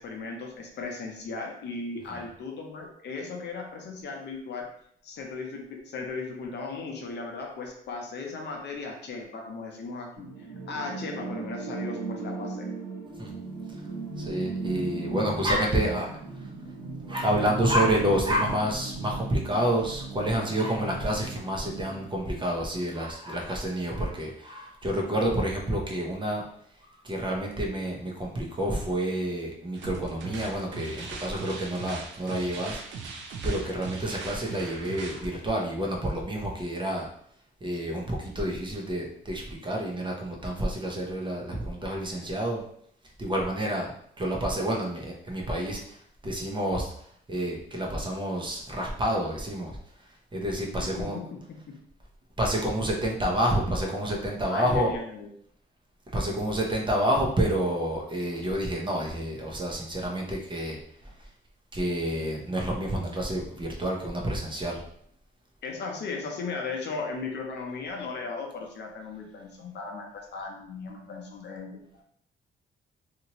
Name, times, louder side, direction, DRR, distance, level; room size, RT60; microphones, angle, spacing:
voice 1, 0.0-4.7 5.0-12.7 50.8-51.7 54.5-55.3 65.6-72.0, left 4 dB, 60° left, 1 dB, 0.7 m, -37 dB
sound 1, 10.2-22.2, right 3 dB, 50° right, 1.2 m, -37 dB
voice 2, 14.2-16.5 17.1-26.4 26.8-32.8 33.4-37.1 37.6-42.6 43.2-43.9 44.2-46.9 47.3-51.2 52.4-54.9 56.1-61.3 61.7-64.8, right 1 dB, 25° right, -1 dB, 0.8 m, -29 dB
sound 2, 29.7-35.3, right 4 dB, 70° right, 0.6 m, -40 dB
2.9 x 2.5 x 2.9 m, 0.66 s
cardioid pair, 90°, 20 cm